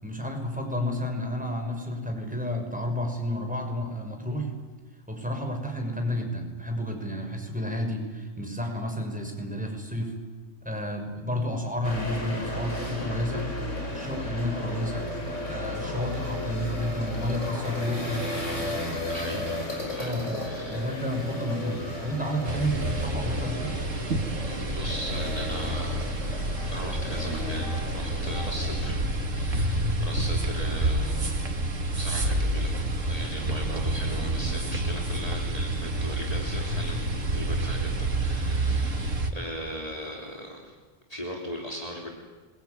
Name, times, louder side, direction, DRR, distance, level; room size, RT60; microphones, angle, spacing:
voice 1, 0.0-4.5 5.1-10.1 10.6-13.5 13.9-15.1 15.5-18.3 18.6-18.8 19.3-19.5 20.0-23.8, equal, 5° right, 3 dB, 5.9 m, -31 dB
sound 1, 11.8-29.0, left 1 dB, 70° left, 6.1 m, -34 dB
voice 2, 19.1-19.6 19.9-20.9 24.5-26.2 26.7-31.4 31.9-32.7 33.1-40.8 41.1-42.2, equal, 30° left, -1 dB, 3.6 m, -39 dB
sound 2, 22.4-39.3, right 1 dB, 80° right, 2.7 m, -28 dB
27.0 x 22.5 x 9.6 m, 1.3 s
omnidirectional pair, 1.3 m